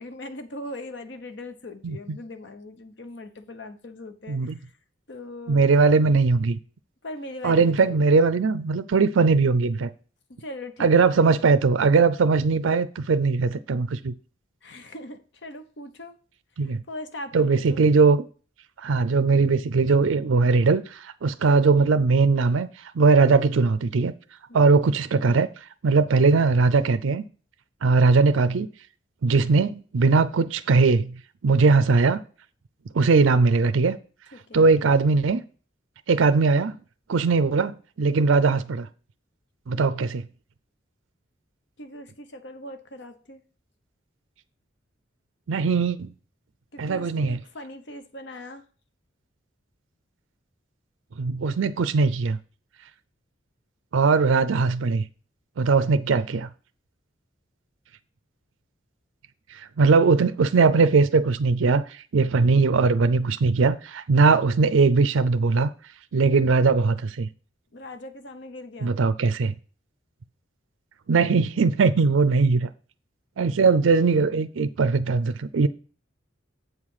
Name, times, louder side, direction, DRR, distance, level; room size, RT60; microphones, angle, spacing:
voice 1, 0.0-4.7 5.1-5.7 7.0-8.0 10.4-10.9 11.2-11.3 14.6-16.2 16.6-17.8 24.5-24.6 34.3-34.7 41.8-43.4 46.7-48.6 67.7-69.0, left 1 dB, 60° left, 0.9 m, -40 dB
voice 2, 1.8-2.2 4.3-4.6 5.5-6.6 7.4-9.9 10.8-14.1 16.6-16.8 17.3-18.3 18.8-24.1 24.5-25.5 25.8-27.2 27.8-28.7 29.2-31.1 31.4-32.2 32.9-34.0 34.5-35.4 36.1-36.8 37.1-38.9 39.7-40.2 45.5-46.1 46.8-47.4 51.2-52.4 53.9-55.0 55.6-56.5 59.5-65.7 66.1-67.3 68.8-69.5 71.1-72.7 73.4-75.7, right 4 dB, 80° right, 0.5 m, -20 dB
7.9 x 4.9 x 5.5 m
head